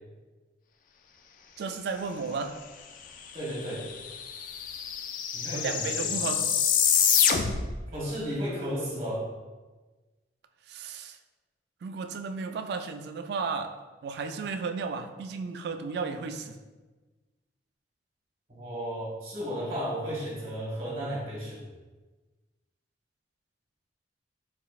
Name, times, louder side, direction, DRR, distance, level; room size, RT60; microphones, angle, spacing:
voice 1, 1.6-2.6 5.5-6.5 10.7-11.2 11.8-16.6, right 4 dB, 65° right, 8 dB, 0.3 m, -34 dB
sound 1, 3.3-3.4 3.6-7.8, left 7 dB, 50° left, 0.3 m, -26 dB
voice 2, 3.3-3.8 5.3-6.1 7.9-9.2 18.5-21.6, equal, 35° right, -5 dB, 1.2 m, -34 dB
4.3 x 3.9 x 2.3 m, 1.3 s
head